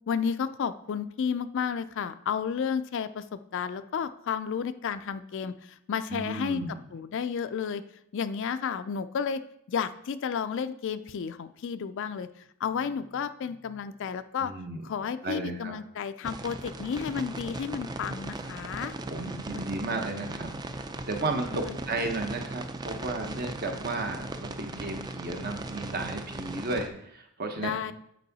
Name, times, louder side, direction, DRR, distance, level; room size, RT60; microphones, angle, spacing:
voice 1, 0.1-6.6 6.9-7.8 8.1-9.4 9.7-12.3 12.6-14.5 14.8-18.9 19.5-19.6 21.7-21.8 27.6-27.9, left 7 dB, 55° left, 12 dB, 0.4 m, -32 dB
voice 2, 6.1-6.8 14.4-14.8 15.2-15.7 19.1-27.8, right 2 dB, 45° right, 4 dB, 0.9 m, -34 dB
sound 1, 16.2-26.9, right 2 dB, 20° right, 0.4 m, -38 dB
8.2 x 4.5 x 4.0 m, 0.75 s
head